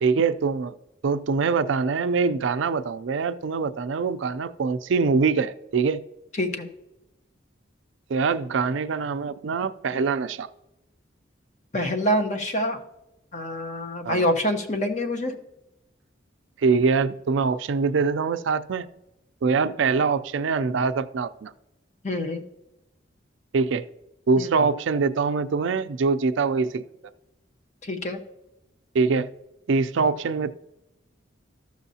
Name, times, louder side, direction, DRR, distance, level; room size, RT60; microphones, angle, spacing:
voice 1, 0.0-0.7 1.0-6.0 8.1-10.5 14.0-14.3 16.6-18.9 19.4-21.5 23.5-23.8 24.3-26.8 28.9-29.3 29.7-30.5, right 4 dB, 75° right, 12 dB, 0.4 m, -23 dB
voice 2, 11.7-12.8 13.3-15.4 22.0-22.4 24.4-24.5 27.8-28.2, equal, 35° left, 4 dB, 0.8 m, -26 dB
13.5 x 6.2 x 2.8 m, 0.93 s
head